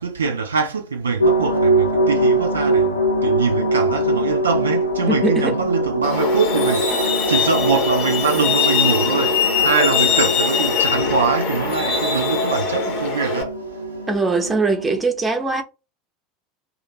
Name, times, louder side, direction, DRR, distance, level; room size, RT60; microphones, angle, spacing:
voice 1, 0.0-13.6, right 5 dB, 75° right, 0.4 m, -23 dB
sound 1, 1.2-15.0, right 1 dB, 80° left, 0.6 m, -23 dB
voice 2, 5.1-5.6 7.2-7.3 14.1-15.6, right 3 dB, 15° right, 0.7 m, -21 dB
Truck, 6.0-13.4, left 6 dB, 50° left, 0.8 m, -22 dB
2.5 x 2.4 x 3.0 m
figure-of-eight pair, 75°, 0 cm